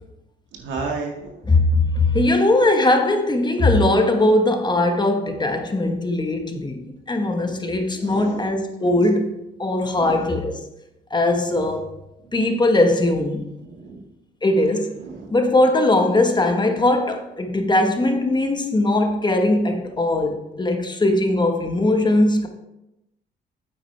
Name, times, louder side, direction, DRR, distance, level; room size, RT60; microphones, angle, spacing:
voice 1, 0.5-1.6 7.4-8.6 9.9-10.4 12.2-12.3 13.6-14.0 15.0-15.4, right 4 dB, 80° right, 1 dB, 1.9 m, -34 dB
voice 2, 1.5-9.3 9.6-10.5 11.1-11.9 12.3-13.4 14.4-14.9 15.3-22.5, left 2 dB, 25° left, 5 dB, 1.3 m, -20 dB
8.9 x 8.5 x 3.3 m, 0.90 s
cardioid pair, 80°, 19 cm